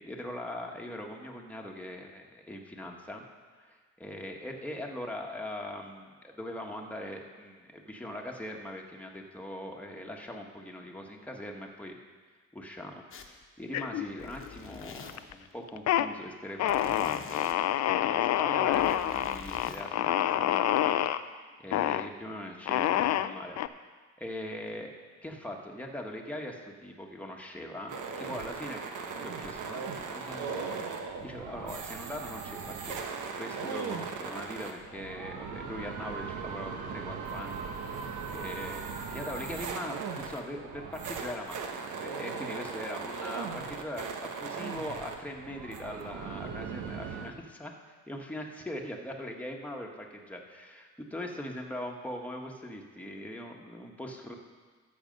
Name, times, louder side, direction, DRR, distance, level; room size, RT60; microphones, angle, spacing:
voice 1, 0.0-3.2 3.6-12.0 12.5-17.5 17.9-21.0 21.6-23.6 24.2-24.9 25.2-38.8 39.1-54.3, left 1 dB, 5° left, 0 dB, 1.5 m, -41 dB
sound 1, 13.1-13.4 13.9-15.4 16.7-17.5 18.5-19.8, left 5 dB, 45° left, 1.2 m, -46 dB
sound 2, 13.7-14.5 14.8-15.3 15.7-16.1 16.6-21.2 21.7-22.1 22.7-23.7, left 12 dB, 60° left, 0.5 m, -27 dB
sound 3, 27.9-47.3, right 5 dB, 75° right, 1.2 m, -38 dB
13.0 x 6.9 x 5.3 m, 1.5 s
cardioid pair, 90°, 30 cm